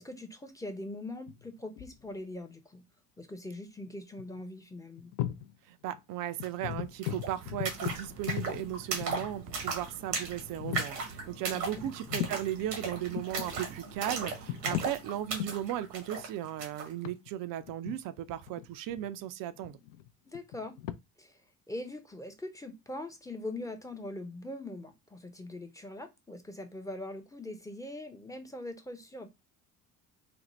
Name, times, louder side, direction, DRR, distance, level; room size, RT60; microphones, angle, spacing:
voice 1, 0.0-2.8 3.2-5.1 11.5-11.9 20.3-20.8 21.2-21.4 21.7-29.3, left 1 dB, 5° left, 0.6 m, -42 dB
sound 1, 1.3-2.1 3.8-3.9 4.2-4.4 5.0-5.5 5.9-6.0 6.4-9.6 10.1-10.2 10.5-11.0 11.8-12.4 12.9-13.5 14.2-15.0 15.3-15.6 16.2-19.2 19.5-20.9, left 12 dB, 50° left, 0.5 m, -38 dB
voice 2, 5.7-19.8, right 12 dB, 45° right, 0.5 m, -36 dB
sound 2, 6.4-6.5 6.7-16.9, right 4 dB, 85° right, 1.2 m, -38 dB
4.2 x 2.1 x 3.0 m
hypercardioid pair, 60°, 48 cm